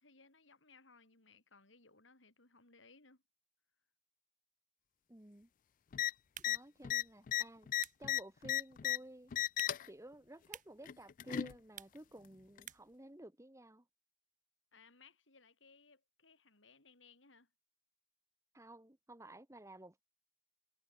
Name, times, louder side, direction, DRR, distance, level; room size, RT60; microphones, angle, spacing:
voice 1, 0.0-3.2 14.7-17.5, left 4 dB, 90° left, 5.2 m, -64 dB
voice 2, 5.1-5.5 6.5-7.7 8.0-9.3 9.9-13.9 18.5-20.0, right 1 dB, 15° right, 1.7 m, -54 dB
sound 1, 5.9-6.1 6.4-6.6 6.8-9.0 9.3-9.9 10.9-11.5 12.6-12.7, left 11 dB, 45° left, 0.3 m, -35 dB
sound 2, 6.2-13.0, right 10 dB, 45° right, 1.1 m, -57 dB
head